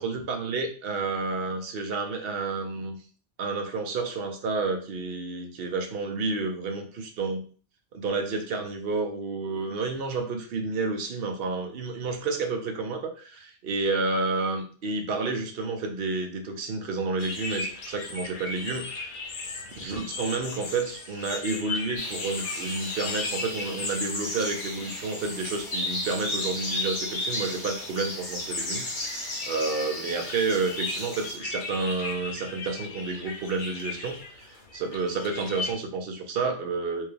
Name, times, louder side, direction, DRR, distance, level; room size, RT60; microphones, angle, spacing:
voice 1, 0.0-3.0 3.4-7.4 7.9-19.1 19.8-37.1, right 3 dB, 60° right, 4 dB, 0.9 m, -30 dB
sound 1, 17.2-35.7, left 3 dB, 55° left, 0.7 m, -38 dB
sound 2, 22.0-31.4, left 2 dB, 85° left, 1.4 m, -34 dB
4.5 x 2.2 x 3.2 m, 0.41 s
omnidirectional pair, 1.1 m